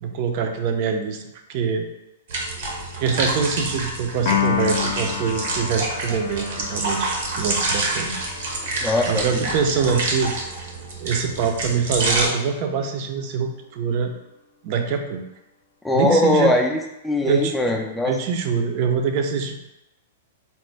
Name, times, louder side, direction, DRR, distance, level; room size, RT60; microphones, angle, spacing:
voice 1, 0.0-1.2 1.5-1.8 3.0-8.2 8.7-10.3 11.0-14.1 14.6-15.2 15.9-16.6 17.2-17.5 18.0-19.6, right 6 dB, 45° right, 5 dB, 0.5 m, -24 dB
sound 1, 2.3-12.3, right 2 dB, 70° right, 0.9 m, -27 dB
Piano, 4.3-10.6, left 8 dB, 55° left, 0.5 m, -30 dB
voice 2, 8.8-9.4 15.8-18.2, left 1 dB, 5° left, 0 dB, 0.4 m, -21 dB
4.2 x 2.1 x 3.3 m, 0.91 s
hypercardioid pair, 135°, 0 cm